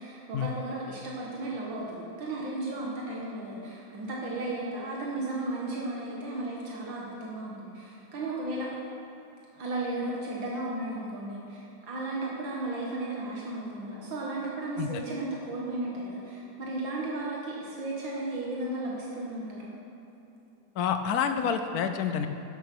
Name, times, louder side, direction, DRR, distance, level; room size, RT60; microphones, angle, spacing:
voice 1, 0.0-8.7 9.5-19.7, right 2 dB, 75° right, -4 dB, 2.1 m, -34 dB
voice 2, 20.8-22.3, left 7 dB, 70° left, 8 dB, 0.9 m, -28 dB
10.0 x 8.4 x 6.0 m, 2.9 s
omnidirectional pair, 2.1 m